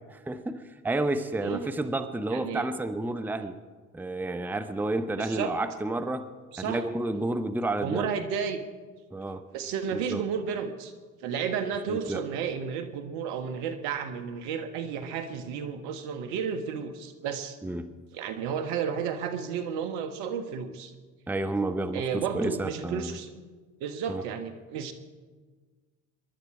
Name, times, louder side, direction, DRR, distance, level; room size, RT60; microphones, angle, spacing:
voice 1, 0.1-3.6 3.9-6.3 6.6-8.1 9.1-9.4 9.9-10.2 11.9-12.2 17.6-17.9 21.3-23.2 24.1-24.2, right 2 dB, 5° right, 9 dB, 0.8 m, -30 dB
voice 2, 1.4-1.7 2.3-2.7 5.2-5.5 6.5-6.8 7.8-8.6 9.5-10.9 11.2-17.6 18.1-20.9 21.9-23.3 23.8-24.9, right 7 dB, 65° right, 8 dB, 1.5 m, -32 dB
23.5 x 11.5 x 4.9 m, 1.5 s
hypercardioid pair, 70°, 42 cm